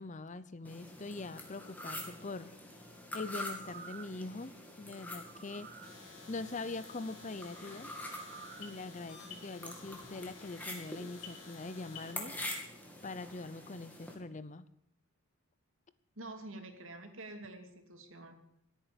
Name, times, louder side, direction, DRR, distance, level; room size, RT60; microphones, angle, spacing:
voice 1, 0.0-2.5 3.1-5.7 6.3-7.9 8.6-12.3 13.0-14.7, left 3 dB, 35° left, 14 dB, 0.6 m, -43 dB
sound 1, 0.6-14.1, left 1 dB, 10° left, 2.5 m, -46 dB
sound 2, 3.6-4.2 5.3-5.9 8.0-8.7 9.2-9.3, right 6 dB, 45° right, 0.9 m, -51 dB
sound 3, 5.8-12.1, left 5 dB, 75° left, 4.1 m, -53 dB
voice 2, 16.2-18.4, right 2 dB, 65° right, 5 dB, 2.6 m, -47 dB
16.0 x 9.0 x 8.6 m, 0.74 s
head